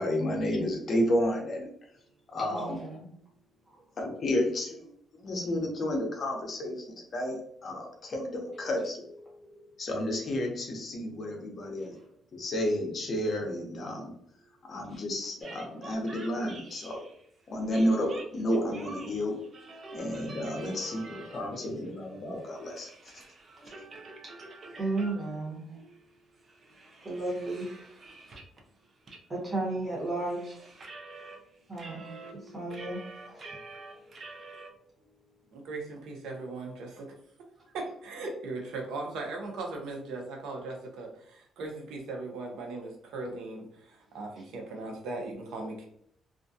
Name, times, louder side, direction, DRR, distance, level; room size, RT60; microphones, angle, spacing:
voice 1, 0.0-1.7 2.3-2.8 4.0-4.9 5.2-6.9 7.1-9.0 9.8-12.0 12.3-14.1 14.7-17.0 17.5-19.4 19.9-22.9, left 1 dB, 45° left, 1 dB, 0.6 m, -31 dB
voice 2, 2.5-3.1 8.5-8.8 9.2-9.7 11.6-12.0 14.9-15.0 20.5-21.4 23.6-24.3 24.6-26.0 27.0-27.7 29.3-30.6 31.7-34.1 45.5-45.7, right 2 dB, 15° right, -6 dB, 0.9 m, -36 dB
sound 1, 15.4-17.2 17.7-21.7 22.0-25.5 25.9-26.0 26.4-28.6 29.1-29.2 29.5-31.4 31.7-34.7, right 3 dB, 35° right, 0.4 m, -47 dB
voice 3, 35.5-37.2 37.7-45.9, right 3 dB, 85° right, 2 dB, 0.6 m, -38 dB
2.4 x 2.2 x 2.6 m, 0.69 s
cardioid pair, 140°, 0 cm